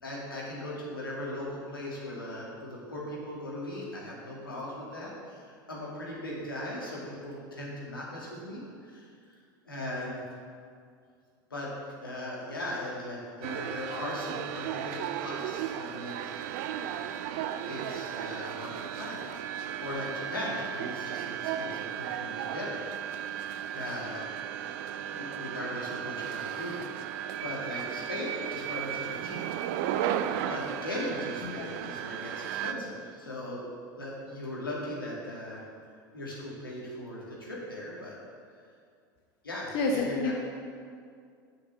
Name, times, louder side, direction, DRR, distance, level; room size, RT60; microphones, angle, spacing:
voice 1, 0.0-9.1 9.7-10.2 11.5-11.7 12.0-16.4 17.7-22.8 23.1-23.4 23.7-24.3 25.1-26.8 27.4-29.4 30.5-33.7 34.0-35.6 36.1-38.2 39.4-40.3, left 1 dB, 90° left, -5 dB, 2.2 m, -38 dB
sound 1, 13.4-32.7, right 10 dB, 55° right, 0.5 m, -35 dB
voice 2, 31.4-31.7 39.7-40.3, left 3 dB, 50° left, 0 dB, 1.0 m, -29 dB
7.0 x 5.8 x 6.8 m, 2.2 s
figure-of-eight pair, 80°, 11 cm